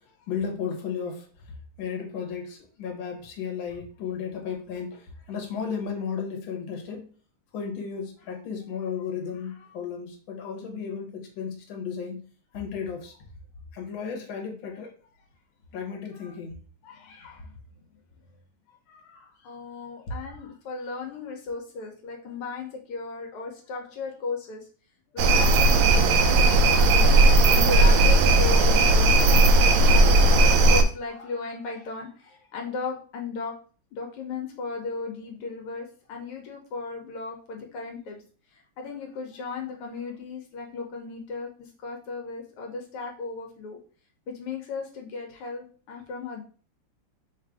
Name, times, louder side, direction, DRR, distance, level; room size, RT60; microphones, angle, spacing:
voice 1, 0.3-1.3 1.8-7.1 7.5-12.3 12.5-13.1 13.7-14.9 15.7-16.6, left 6 dB, 70° left, 1.7 m, -34 dB
voice 2, 16.8-17.8 18.3-18.4 18.9-24.7 25.1-33.6 33.9-38.2 38.5-43.8 44.3-46.4, left 4 dB, 85° left, 1.7 m, -36 dB
sound 1, 25.2-30.8, right 2 dB, 75° right, 1.3 m, -17 dB
4.1 x 2.5 x 4.6 m
omnidirectional pair, 2.4 m